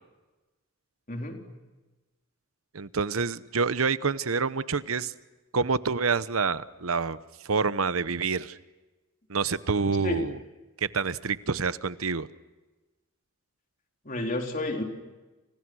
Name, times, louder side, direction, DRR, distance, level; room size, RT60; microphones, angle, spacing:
voice 1, 1.1-1.4 10.0-10.3 14.1-14.8, left 1 dB, 40° left, 2 dB, 3.9 m, -30 dB
voice 2, 2.7-5.1 5.5-7.2 7.4-8.6 9.3-10.4 10.8-12.3, right 5 dB, 85° right, 15 dB, 0.9 m, -27 dB
30.0 x 29.0 x 6.3 m, 1.2 s
head